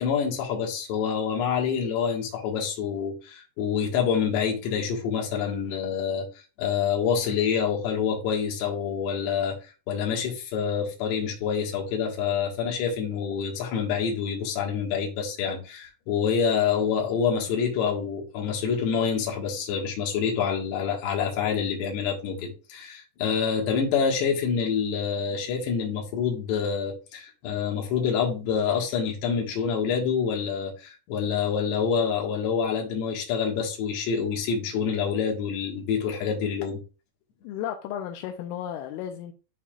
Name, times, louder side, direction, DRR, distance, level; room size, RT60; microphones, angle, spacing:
voice 1, 0.0-6.3 6.6-9.6 9.9-36.8, left 7 dB, 65° left, 3.7 m, -27 dB
voice 2, 37.4-39.3, left 10 dB, 85° left, 3.2 m, -34 dB
12.0 x 4.2 x 2.5 m
omnidirectional pair, 5.7 m